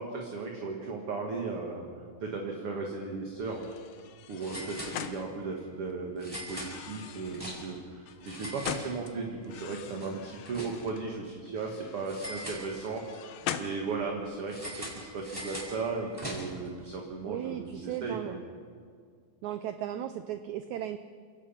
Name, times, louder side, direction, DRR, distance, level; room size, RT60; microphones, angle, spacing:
voice 1, 0.0-1.9 2.2-3.6 4.3-13.3 13.6-18.4, right 4 dB, 45° right, 1 dB, 2.3 m, -36 dB
sound 1, 3.2-3.4 3.7-3.8 4.4-5.4 6.2-7.9 8.2-9.4 9.7-11.1 12.1-13.2 14.5-16.7, equal, 5° right, 4.7 m, -42 dB
sound 2, 3.4-5.9 6.4-9.1 9.4-11.0 11.5-14.3, left 9 dB, 85° left, 2.8 m, -42 dB
voice 2, 17.2-18.4 19.4-21.0, right 11 dB, 85° right, 11 dB, 1.6 m, -36 dB
28.0 x 17.5 x 5.8 m, 2.1 s
omnidirectional pair, 4.1 m